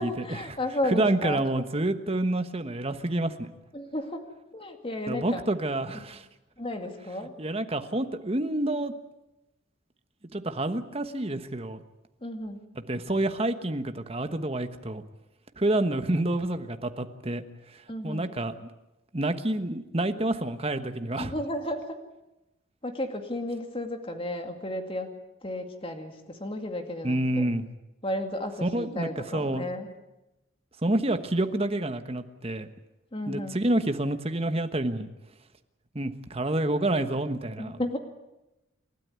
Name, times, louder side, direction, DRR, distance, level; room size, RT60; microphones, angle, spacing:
voice 1, 0.0-1.4 3.7-4.2 4.5-5.4 6.6-7.3 12.2-12.7 17.9-18.3 21.2-22.0 22.8-25.1 25.4-27.5 28.0-29.9 33.1-33.6 37.6-38.0, left 1 dB, 30° left, 5 dB, 2.3 m, -33 dB
voice 2, 0.9-3.5 5.1-6.2 7.4-8.9 10.3-11.8 12.9-15.0 15.6-17.4 17.7-18.5 19.1-21.3 27.0-27.6 28.6-29.7 30.8-32.7 33.3-35.1 35.9-37.8, right 1 dB, 30° right, 9 dB, 1.3 m, -28 dB
28.5 x 13.0 x 9.5 m, 0.98 s
head